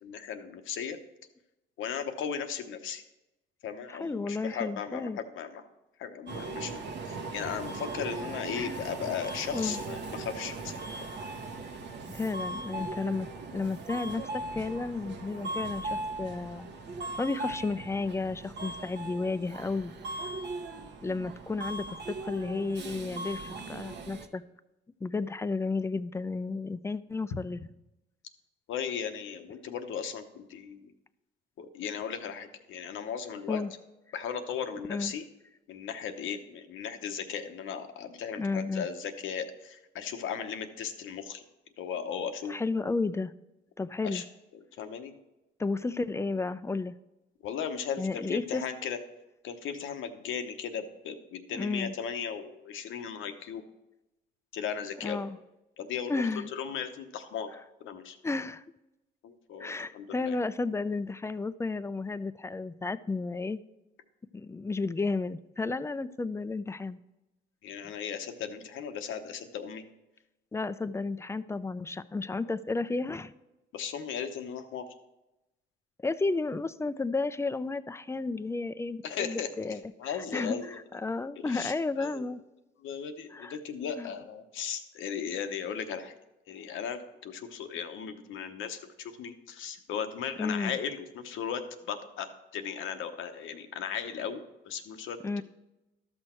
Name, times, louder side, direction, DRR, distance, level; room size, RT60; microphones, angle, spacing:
voice 1, 0.0-1.0 1.8-3.0 3.6-5.1 5.3-5.6 6.0-10.7 28.7-30.9 31.6-33.6 34.1-35.2 35.7-41.4 41.8-42.5 44.0-44.2 44.8-45.1 47.4-49.0 49.4-53.6 54.5-55.2 55.8-56.2 56.5-57.5 57.8-58.2 59.2-60.4 67.6-69.8 73.7-74.9 79.0-80.8 81.4-82.3 82.8-86.1 86.5-91.6 91.9-95.4, left 7 dB, 80° left, 8 dB, 0.9 m, -37 dB
voice 2, 4.0-5.2 8.5-8.8 9.5-9.8 12.1-16.7 17.2-19.9 21.0-24.4 25.0-27.6 33.5-33.7 34.9-35.1 38.4-38.9 42.5-43.3 43.8-44.2 45.6-46.9 48.0-48.6 51.5-51.9 55.0-55.4 56.1-56.5 58.2-58.6 59.6-63.6 64.3-67.0 70.5-73.3 76.0-82.4 83.3-83.6 84.0-84.1 90.4-90.8 95.2-95.4, left 3 dB, 15° left, 14 dB, 0.4 m, -32 dB
Subway metro underground, 6.3-24.3, right 2 dB, 65° right, 1.0 m, -39 dB
12.5 x 6.2 x 4.4 m, 0.98 s
cardioid pair, 90°, 20 cm